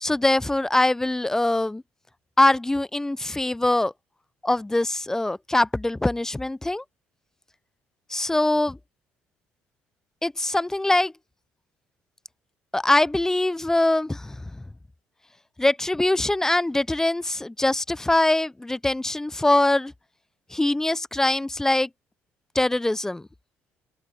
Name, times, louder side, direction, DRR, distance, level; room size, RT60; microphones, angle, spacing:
voice 1, 0.0-1.8 2.4-3.9 4.4-6.8 8.1-8.8 10.2-11.1 12.7-14.6 15.6-19.9 20.5-21.9 22.5-23.2, left 2 dB, 10° left, 0.4 m, -23 dB
open air
cardioid pair, 105°, 6 cm